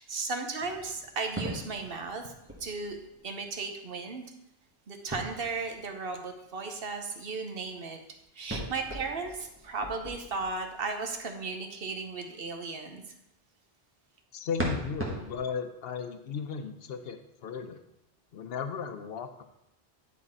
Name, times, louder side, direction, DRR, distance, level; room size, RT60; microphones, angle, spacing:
voice 1, 0.0-2.3 2.6-3.0 3.2-4.2 4.9-8.0 8.3-13.0, right 4 dB, 65° right, 5 dB, 1.1 m, -35 dB
sound 1, 0.6-3.4 5.1-6.2 8.5-11.2 14.6-15.4, right 1 dB, 10° right, 1.2 m, -39 dB
voice 2, 14.3-17.8 18.3-19.4, left 6 dB, 70° left, 8 dB, 0.9 m, -36 dB
9.7 x 4.1 x 4.3 m, 0.84 s
omnidirectional pair, 1.0 m